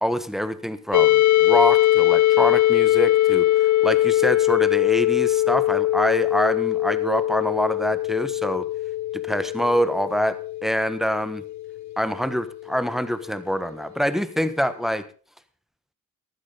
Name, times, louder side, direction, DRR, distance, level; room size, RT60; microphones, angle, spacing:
voice 1, 0.0-3.4 3.8-8.6 9.2-11.4 12.0-15.0, equal, ahead, 13 dB, 1.4 m, -25 dB
sound 1, 0.9-12.6, left 15 dB, 50° left, 0.8 m, -21 dB
15.0 x 12.0 x 4.0 m, 0.39 s
supercardioid pair, 55°, 37 cm